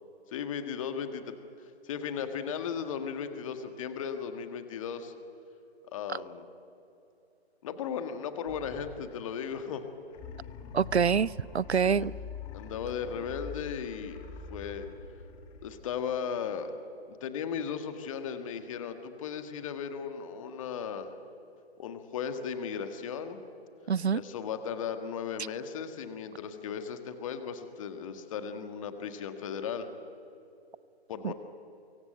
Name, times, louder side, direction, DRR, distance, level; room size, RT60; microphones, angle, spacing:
voice 1, 0.3-5.1 5.9-6.4 7.6-9.8 11.8-12.1 12.5-14.2 14.5-14.9 15.6-16.7 17.1-21.1 21.8-23.4 24.1-29.9 31.1-31.3, left 7 dB, 30° left, 8 dB, 1.7 m, -36 dB
sound 1, 8.5-9.6 10.1-16.1, left 5 dB, 15° left, 1.6 m, -45 dB
voice 2, 10.7-12.1 23.9-24.2 31.2-31.3, right 6 dB, 80° right, 22 dB, 0.6 m, -26 dB
24.0 x 23.5 x 7.9 m, 2.8 s
figure-of-eight pair, 140°, 33 cm